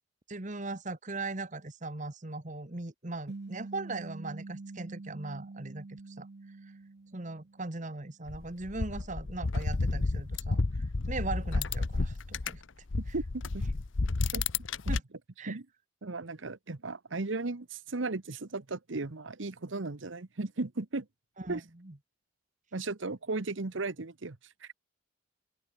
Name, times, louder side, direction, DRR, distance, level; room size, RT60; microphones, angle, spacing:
voice 1, 0.3-6.3 6.6-6.7 7.1-12.6 14.9-15.0 15.4-15.6 21.4-22.0, right 2 dB, 40° right, 1.4 m, -39 dB
sound 1, 3.3-7.9, right 3 dB, 55° right, 0.6 m, -45 dB
sound 2, 8.3-12.6 12.9-15.0, left 3 dB, 70° left, 0.9 m, -31 dB
voice 2, 16.0-21.1 21.5-21.6 22.7-24.7, right 3 dB, 70° right, 1.1 m, -36 dB
open air
head